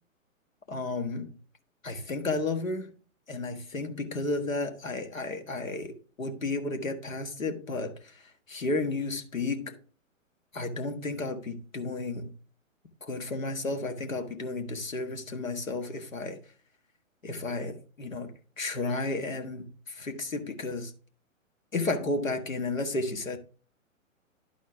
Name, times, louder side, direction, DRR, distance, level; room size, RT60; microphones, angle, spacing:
voice 1, 0.7-1.4 1.8-2.9 3.3-9.8 10.5-12.3 13.0-16.4 17.2-20.9 21.7-23.4, left 3 dB, 75° left, 1.6 m, -33 dB
11.5 x 4.3 x 3.6 m
figure-of-eight pair, 125°, 41 cm